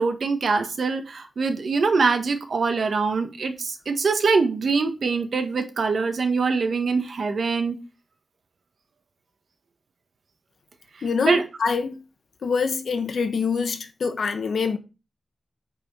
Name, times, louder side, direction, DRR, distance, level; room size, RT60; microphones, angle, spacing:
voice 1, 0.0-7.8 11.2-11.4, right 4 dB, 65° right, 1.4 m, -23 dB
voice 2, 11.0-12.0 12.4-14.8, left 5 dB, 75° left, 1.2 m, -25 dB
9.1 x 4.6 x 5.5 m
wide cardioid pair, 135°, 0 cm